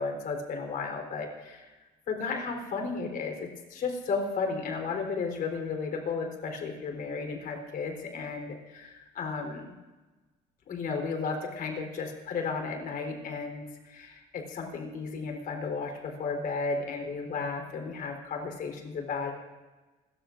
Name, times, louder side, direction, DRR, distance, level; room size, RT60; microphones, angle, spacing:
voice 1, 0.0-1.7 2.1-9.7 10.7-19.3, left 4 dB, 55° left, 3 dB, 3.9 m, -34 dB
29.5 x 14.5 x 2.6 m, 1.2 s
cardioid pair, 110°, 17 cm